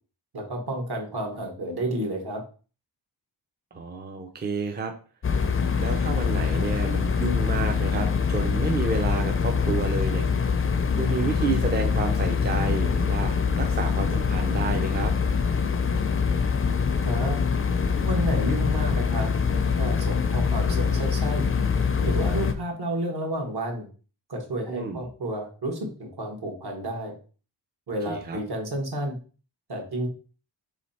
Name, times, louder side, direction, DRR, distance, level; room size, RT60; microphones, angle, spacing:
voice 1, 0.3-2.4 17.0-17.4 18.0-21.5 22.0-23.9 24.3-27.1 27.9-29.2 29.7-30.1, right 1 dB, 60° right, 2 dB, 1.4 m, -31 dB
voice 2, 3.7-4.9 5.8-10.3 11.0-15.1 24.7-25.1 28.1-28.4, right 4 dB, 25° right, 3 dB, 0.5 m, -30 dB
sound 1, 5.2-22.5, left 6 dB, 30° left, 0.5 m, -24 dB
3.2 x 3.1 x 4.2 m, 0.37 s
wide cardioid pair, 115°, 43 cm